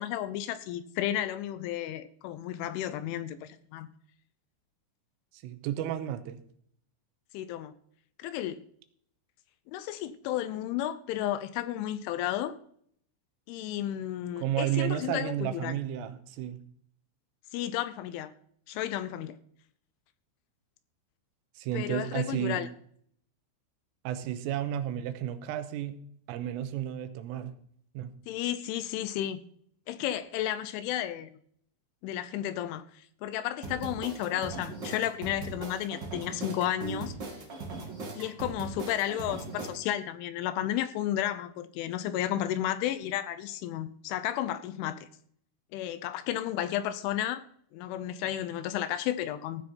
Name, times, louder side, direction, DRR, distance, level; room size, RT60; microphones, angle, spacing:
voice 1, 0.0-3.9 7.3-7.7 8.2-8.6 9.7-12.6 13.5-15.8 17.5-18.3 18.7-19.4 21.7-22.7 28.3-29.4 29.9-31.3 32.0-37.1 38.2-45.1 45.7-47.4 47.7-49.6, left 12 dB, 80° left, 14 dB, 2.9 m, -32 dB
voice 2, 5.4-6.4 14.4-16.6 21.6-22.6 24.0-26.0 26.3-27.5 27.9-28.1, right 11 dB, 85° right, 11 dB, 3.4 m, -32 dB
sound 1, 33.6-39.7, right 3 dB, 45° right, 1.5 m, -39 dB
15.5 x 9.5 x 4.3 m, 0.64 s
omnidirectional pair, 5.8 m